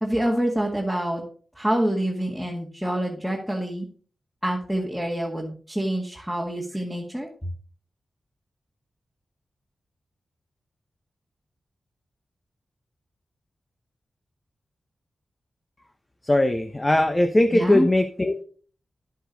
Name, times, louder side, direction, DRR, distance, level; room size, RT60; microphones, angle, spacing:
voice 1, 0.0-1.2 1.6-3.9 4.4-7.3 17.5-17.9, right 1 dB, ahead, -1 dB, 1.9 m, -26 dB
voice 2, 16.2-18.4, left 1 dB, 25° left, 6 dB, 0.9 m, -20 dB
10.5 x 7.7 x 4.0 m, 0.43 s
wide cardioid pair, 80°, 0 cm